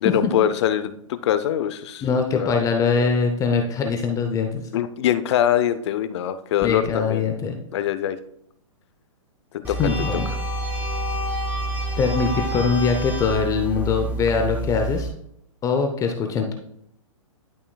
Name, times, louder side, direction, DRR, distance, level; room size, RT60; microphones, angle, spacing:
voice 1, 0.0-2.0 2.3-2.5 4.7-7.2 7.7-8.2 9.5-9.8, left 11 dB, 55° left, 12 dB, 0.6 m, -23 dB
voice 2, 2.0-4.7 6.6-7.6 9.6-10.3 12.0-15.1 15.6-16.5, left 5 dB, 20° left, 4 dB, 0.7 m, -22 dB
sound 1, 9.6-15.1, right 1 dB, 10° right, 1.7 m, -28 dB
11.0 x 5.6 x 2.3 m, 0.74 s
hypercardioid pair, 130°, 17 cm